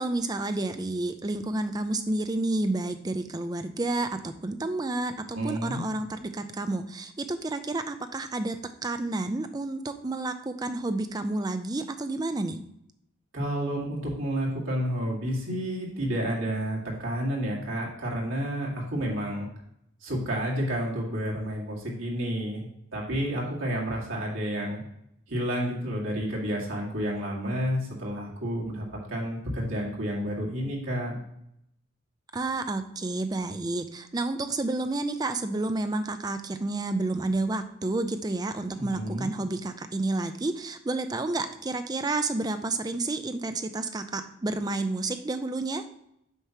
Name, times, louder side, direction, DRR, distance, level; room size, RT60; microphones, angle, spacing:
voice 1, 0.0-8.6 8.8-12.6 32.3-45.8, right 2 dB, 20° right, 9 dB, 0.4 m, -30 dB
voice 2, 5.3-5.8 13.3-19.5 20.0-22.6 22.9-24.8 25.3-31.1 38.7-39.3, equal, 80° right, -3 dB, 2.1 m, -30 dB
8.1 x 3.0 x 5.8 m, 0.78 s
head